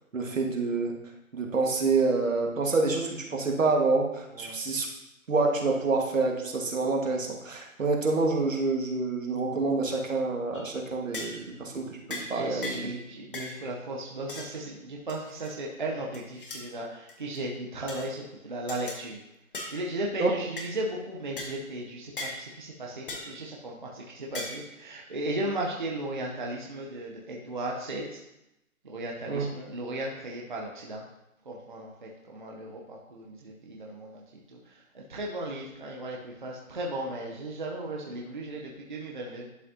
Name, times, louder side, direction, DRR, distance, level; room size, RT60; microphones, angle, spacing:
voice 1, 0.1-1.0 1.3-4.9 5.3-12.7 20.2-20.3 29.3-29.5, right 3 dB, 65° right, 1 dB, 1.7 m, -27 dB
sound 1, 10.5-10.7 11.1-11.5 12.1-12.3 12.6-12.9 13.3-13.6 14.3-14.5 15.1-15.5 16.1-16.6 17.1-17.4 17.9-18.1 18.7-19.0 19.5-19.8 20.6-20.7 21.4-21.5 22.2-22.4 23.1-23.3 24.3-24.7, left 2 dB, 40° left, 1.1 m, -38 dB
voice 2, 12.3-19.2 19.7-28.2 28.8-31.0 31.4-39.5, right 1 dB, 35° right, -1 dB, 0.7 m, -36 dB
11.0 x 5.2 x 2.7 m, 0.90 s
hypercardioid pair, 170°, 42 cm